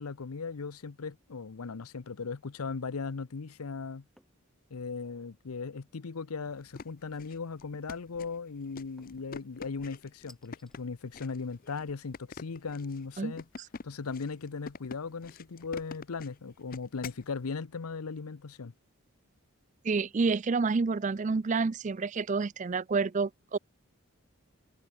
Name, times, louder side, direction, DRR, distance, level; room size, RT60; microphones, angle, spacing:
voice 1, 0.0-4.0 4.7-13.4 13.8-18.7, left 4 dB, 85° left, 0.7 m, -38 dB
sound 1, 4.2-4.4 4.9-5.4 7.1-7.6 9.0-9.3 10.3-10.8, equal, ahead, 3.2 m, -61 dB
sound 2, 6.5-17.3, left 4 dB, 40° left, 0.5 m, -47 dB
voice 2, 19.8-23.6, right 4 dB, 35° right, 0.4 m, -29 dB
head